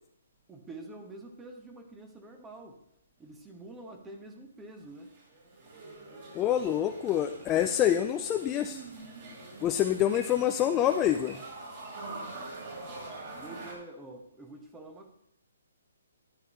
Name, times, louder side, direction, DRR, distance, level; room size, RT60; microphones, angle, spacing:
voice 1, 0.5-2.8 3.2-5.2 13.4-15.1, right 2 dB, 10° right, 4 dB, 1.2 m, -47 dB
sound 1, 4.8-13.7, right 2 dB, 40° right, 4.8 m, -44 dB
voice 2, 6.3-8.8 9.6-11.4, left 11 dB, 15° left, 6 dB, 0.4 m, -26 dB
13.0 x 10.5 x 3.1 m, 0.71 s
hypercardioid pair, 155°, 0 cm